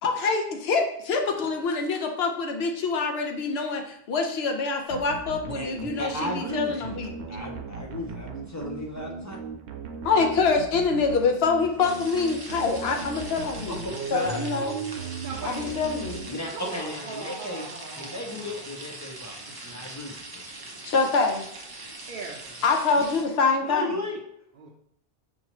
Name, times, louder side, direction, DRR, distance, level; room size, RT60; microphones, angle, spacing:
voice 1, 0.0-7.1 10.0-13.8 14.1-14.8 15.4-16.4 20.8-21.4 22.6-24.0, left 4 dB, 75° left, 3 dB, 0.9 m, -25 dB
sound 1, 4.9-16.8, right 5 dB, 90° right, 0.9 m, -38 dB
voice 2, 5.5-7.0 7.3-9.4 14.1-14.5 16.3-17.6 18.0-19.4 19.6-20.4 23.6-24.2, left 1 dB, 30° left, 0 dB, 0.3 m, -34 dB
sound 2, 11.8-23.2, right 2 dB, 30° right, 0.5 m, -42 dB
voice 3, 15.2-15.9 16.5-18.7 19.4-19.9 22.1-22.6 22.9-23.1 24.5-24.7, right 4 dB, 60° right, -3 dB, 0.7 m, -40 dB
5.4 x 2.7 x 2.9 m, 0.71 s
omnidirectional pair, 1.1 m